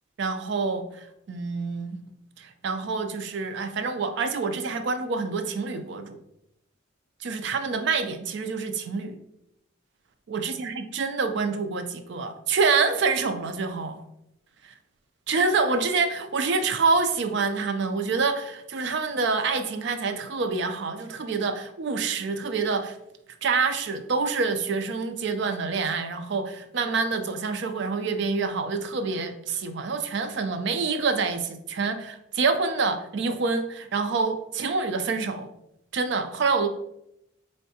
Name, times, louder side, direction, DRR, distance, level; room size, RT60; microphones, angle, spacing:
voice 1, 0.2-2.0 2.4-6.2 7.2-9.2 10.3-14.0 14.6-14.7 15.3-23.0 23.4-35.5 35.9-36.7, right 4 dB, 60° right, 8 dB, 0.4 m, -27 dB
4.5 x 3.3 x 2.7 m, 0.82 s
head